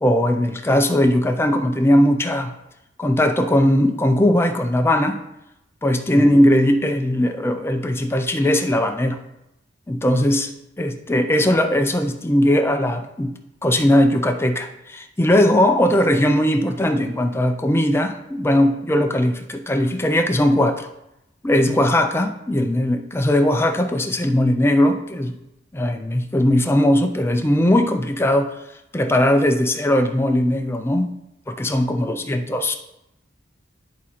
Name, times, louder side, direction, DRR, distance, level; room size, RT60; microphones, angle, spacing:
voice 1, 0.0-2.5 3.0-5.2 5.8-9.2 9.9-10.5 10.8-13.3 13.6-20.9 21.4-25.3 25.7-28.5 28.9-31.1 31.5-32.8, left 1 dB, 15° left, 6 dB, 0.4 m, -19 dB
11.0 x 3.7 x 4.2 m, 0.86 s
head